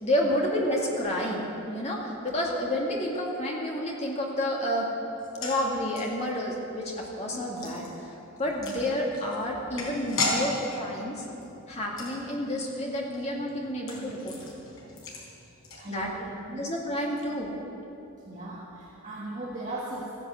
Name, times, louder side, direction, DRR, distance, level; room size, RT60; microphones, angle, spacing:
voice 1, 0.0-4.9 5.4-11.2 11.7-14.4 15.9-16.1 16.6-17.5, left 1 dB, 30° left, -2 dB, 2.3 m, -30 dB
sound 1, 5.1-16.4 16.6-16.7 17.0-17.2, left 2 dB, 70° left, 4.3 m, -37 dB
voice 2, 15.7-16.7 18.2-20.1, right 1 dB, 35° right, -5 dB, 1.6 m, -38 dB
14.5 x 11.0 x 8.0 m, 2.9 s
head